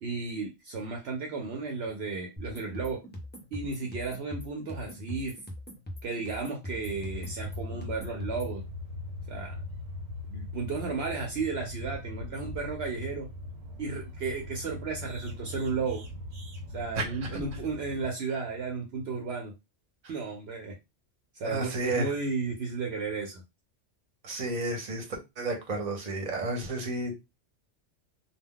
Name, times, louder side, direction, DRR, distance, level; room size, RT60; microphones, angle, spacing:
voice 1, 0.0-3.0 3.5-5.3 6.0-8.6 9.3-9.6 10.3-13.3 13.8-16.0 16.7-19.5 20.1-20.7 21.3-23.4, right 4 dB, 65° right, 0.8 m, -34 dB
sound 1, 2.4-8.6, equal, 15° left, 0.4 m, -42 dB
sound 2, 6.8-18.1, left 2 dB, 85° right, 1.1 m, -40 dB
voice 2, 21.4-22.1 24.2-25.0 25.4-27.3, right 2 dB, 40° right, 0.8 m, -32 dB
2.2 x 2.2 x 3.6 m
omnidirectional pair, 1.2 m